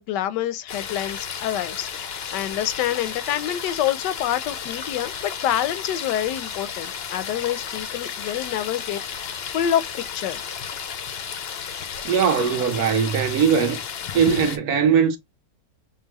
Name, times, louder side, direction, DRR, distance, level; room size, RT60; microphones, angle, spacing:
voice 1, 0.0-1.9 2.3-9.9 10.1-10.4, left 11 dB, 85° left, 1.2 m, -27 dB
sound 1, 0.7-14.6, left 7 dB, 60° left, 0.6 m, -33 dB
voice 2, 12.0-13.8 14.1-15.2, right 7 dB, 65° right, 1.2 m, -20 dB
5.5 x 2.2 x 3.0 m
omnidirectional pair, 1.8 m